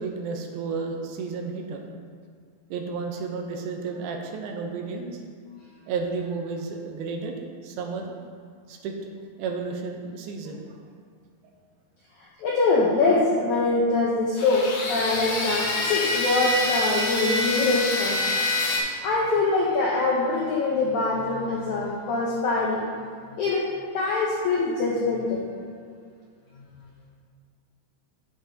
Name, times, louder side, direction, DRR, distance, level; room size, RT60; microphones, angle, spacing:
voice 1, 0.0-1.9 2.7-5.2 5.9-7.3 7.6-8.2 8.7-9.0 9.4-10.8, right 4 dB, 80° right, 2 dB, 2.5 m, -32 dB
voice 2, 12.4-18.3 19.0-22.8 23.3-23.7 23.9-25.4 26.6-26.7, left 3 dB, 80° left, -5 dB, 1.7 m, -24 dB
sound 1, 14.4-18.8, left 2 dB, 65° left, 2.4 m, -26 dB
8.0 x 7.8 x 2.7 m, 2.1 s
omnidirectional pair, 4.5 m